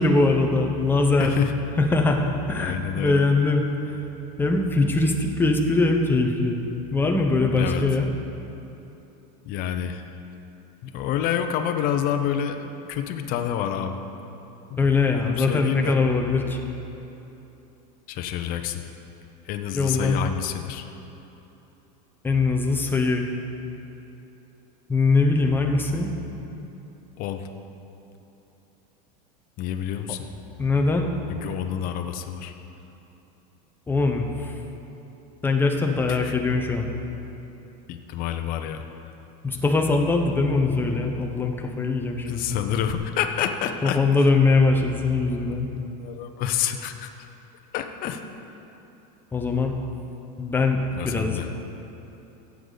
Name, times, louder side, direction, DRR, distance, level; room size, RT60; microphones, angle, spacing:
voice 1, 0.0-1.3 1.8-4.0 4.4-6.6 6.9-8.1 14.8-16.6 19.7-20.2 22.2-23.2 24.9-26.1 30.6-31.1 33.9-34.6 35.4-36.9 39.4-42.6 43.8-45.7 49.3-49.7 50.4-51.4, left 3 dB, 10° left, 2 dB, 0.8 m, -22 dB
voice 2, 1.2-1.6 2.5-3.2 7.5-7.9 9.4-10.1 10.8-14.0 14.7-16.0 18.1-18.8 19.4-20.9 27.2-27.5 29.6-30.3 31.3-32.5 36.1-36.4 37.9-39.1 42.3-44.0 45.6-47.1 47.7-48.2 51.0-51.5, left 9 dB, 45° left, 7 dB, 0.8 m, -28 dB
14.0 x 8.3 x 4.0 m, 3.0 s
supercardioid pair, 140°, 20 cm